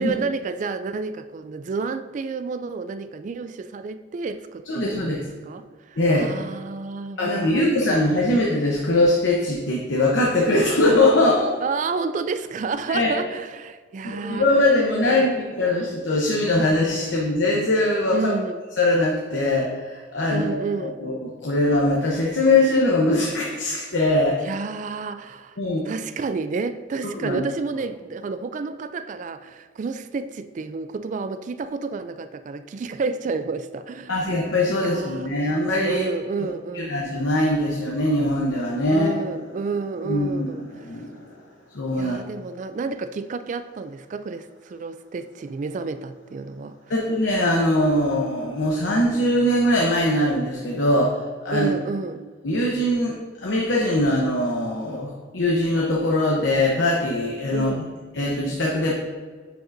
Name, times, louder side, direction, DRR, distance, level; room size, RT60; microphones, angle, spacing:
voice 1, 0.0-7.7 11.6-14.5 15.1-15.3 18.1-18.6 20.3-21.0 24.4-25.6 25.8-34.3 34.8-35.3 35.9-37.0 38.9-40.7 42.0-46.8 51.5-52.2 57.5-57.8, right 4 dB, 40° right, 11 dB, 0.3 m, -30 dB
voice 2, 4.7-5.2 6.0-6.3 7.2-11.5 12.9-13.1 14.0-18.3 18.8-20.6 21.0-24.5 25.6-25.8 27.2-27.4 34.1-36.0 36.7-39.1 40.0-40.5 40.8-41.3 41.7-42.2 46.9-51.7 52.4-57.7 58.1-58.9, left 1 dB, 75° left, -3 dB, 0.9 m, -21 dB
9.0 x 5.0 x 2.6 m, 1.5 s
head